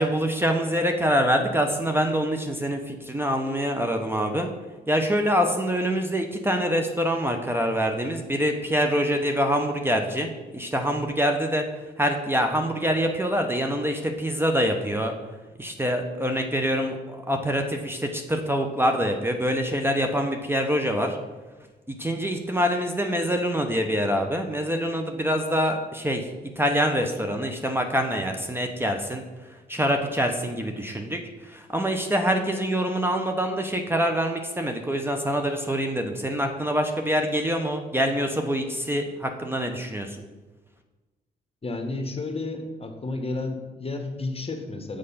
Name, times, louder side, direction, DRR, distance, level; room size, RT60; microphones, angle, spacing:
voice 1, 0.0-4.5 4.9-11.6 12.0-15.1 15.6-21.2 21.9-26.3 26.6-29.2 29.7-40.2, equal, 10° right, 4 dB, 0.9 m, -25 dB
voice 2, 41.6-45.0, left 2 dB, 30° left, 5 dB, 1.2 m, -31 dB
6.5 x 4.9 x 5.7 m, 1.2 s
supercardioid pair, 55°, 20 cm